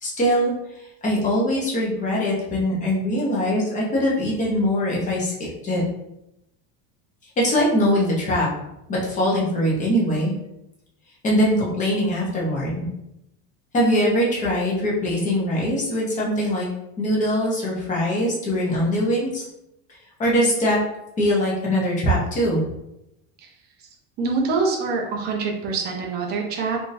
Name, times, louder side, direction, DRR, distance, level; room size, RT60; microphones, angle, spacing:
voice 1, 0.0-5.8 7.4-8.5 8.9-10.3 11.2-12.8 13.7-16.7 17.0-19.4 20.2-20.8 21.2-22.6, equal, 20° left, -5 dB, 0.7 m, -22 dB
voice 2, 24.2-26.8, right 4 dB, 25° right, 0 dB, 0.4 m, -25 dB
3.6 x 2.5 x 2.6 m, 0.85 s
cardioid pair, 170°, 41 cm